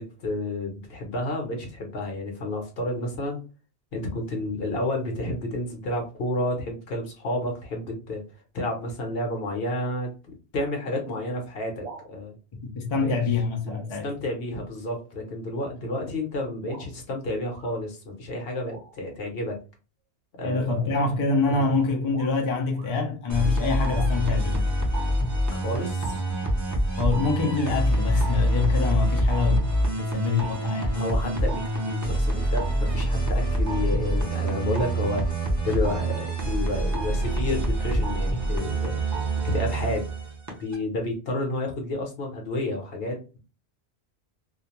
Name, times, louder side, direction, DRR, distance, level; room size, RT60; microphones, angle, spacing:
voice 1, 0.0-3.4 3.9-8.2 8.5-10.1 10.5-12.4 13.0-13.1 14.0-19.6 20.4-21.0 21.5-21.6 25.5-26.2 30.9-35.2 35.6-39.0 39.4-40.0 40.6-43.4, left 1 dB, 65° left, 1.0 m, -30 dB
sound 1, 11.8-12.1 13.0-13.3 13.6-13.9 14.3-14.4 14.8-15.1 15.8-15.9 16.6-16.9 17.5-17.7 18.6-19.1 20.4-23.0 23.9-24.1, right 5 dB, 75° right, 0.8 m, -44 dB
voice 2, 12.6-14.1 20.4-24.7 27.0-29.7 30.0-31.0, left 4 dB, 45° left, 0.4 m, -25 dB
sound 2, 23.3-40.7, right 1 dB, 20° right, 0.5 m, -25 dB
2.4 x 2.2 x 2.9 m
omnidirectional pair, 1.1 m